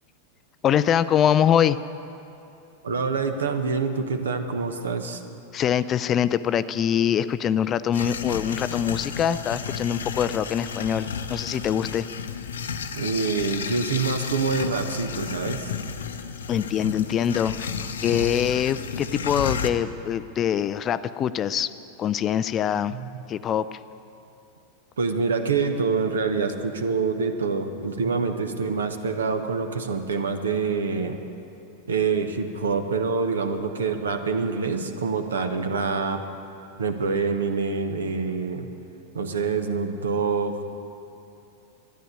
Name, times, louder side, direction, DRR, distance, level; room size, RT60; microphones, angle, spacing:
voice 1, 0.6-1.8 5.5-12.1 16.5-17.7 18.0-21.7 22.0-22.9 23.3-23.8, left 9 dB, 30° left, 15 dB, 0.4 m, -24 dB
voice 2, 2.8-5.2 12.9-15.7 22.9-23.2 25.0-31.2 31.9-36.2 36.8-38.7 39.1-40.6, right 4 dB, 70° right, 7 dB, 1.1 m, -26 dB
sound 1, 7.9-19.7, left 6 dB, 65° left, 0.7 m, -32 dB
13.0 x 10.0 x 9.6 m, 2.9 s
figure-of-eight pair, 90°, 0 cm